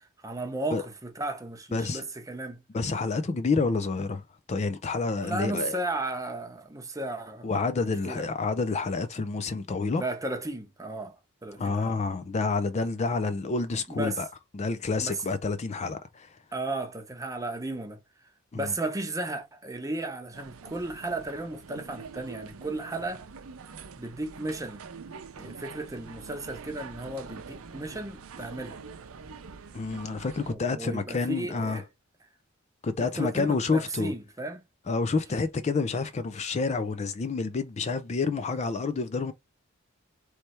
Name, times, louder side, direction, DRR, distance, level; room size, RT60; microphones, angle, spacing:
voice 1, 0.2-2.6 5.2-7.5 8.1-8.3 10.0-12.0 13.9-14.2 15.0-15.2 16.5-18.0 18.5-23.3 24.0-24.8 25.4-28.8 30.5-31.8 33.0-34.6, right 2 dB, 15° right, 0.8 m, -34 dB
voice 2, 1.7-2.0 2.7-5.8 7.4-10.0 11.6-14.3 14.5-16.4 18.5-18.7 29.7-31.8 32.8-34.1 34.9-39.3, left 4 dB, 30° left, 0.4 m, -29 dB
sound 1, 20.3-30.6, right 5 dB, 80° right, 0.6 m, -45 dB
3.3 x 3.2 x 4.3 m
head